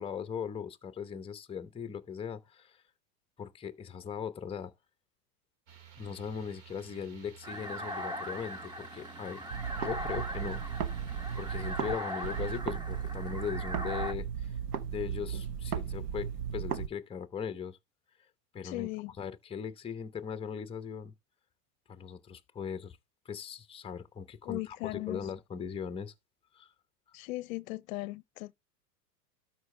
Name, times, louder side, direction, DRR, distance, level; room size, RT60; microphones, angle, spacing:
voice 1, 0.0-2.8 3.4-4.7 6.0-9.4 9.8-10.6 11.4-14.5 14.9-17.8 18.5-18.9 19.2-21.1 21.9-23.0 23.2-26.1 26.5-26.7, left 7 dB, 10° left, 0.8 m, -39 dB
sound 1, 5.7-12.6, right 9 dB, 50° right, 2.2 m, -54 dB
sound 2, 7.4-14.1, equal, 10° right, 1.0 m, -40 dB
sound 3, 9.5-12.0 12.2-16.9, right 8 dB, 75° right, 1.3 m, -35 dB
voice 2, 18.6-19.1 24.4-25.3 27.1-28.6, left 20 dB, 60° left, 0.7 m, -38 dB
12.5 x 5.0 x 3.3 m
hypercardioid pair, 110°, 47 cm